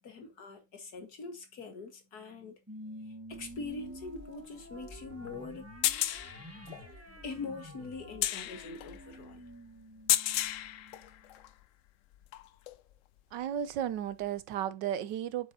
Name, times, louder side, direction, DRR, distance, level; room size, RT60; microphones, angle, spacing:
voice 1, 0.0-2.6 3.0-5.7 7.1-9.4, left 4 dB, 60° left, 2.2 m, -43 dB
sound 1, 2.7-11.4, equal, 10° right, 1.4 m, -49 dB
sound 2, 3.3-11.6 12.1-12.9 14.2-14.3, left 12 dB, 80° left, 0.7 m, -35 dB
voice 2, 13.3-15.5, right 10 dB, 80° right, 1.4 m, -34 dB
8.0 x 6.7 x 2.7 m
omnidirectional pair, 1.9 m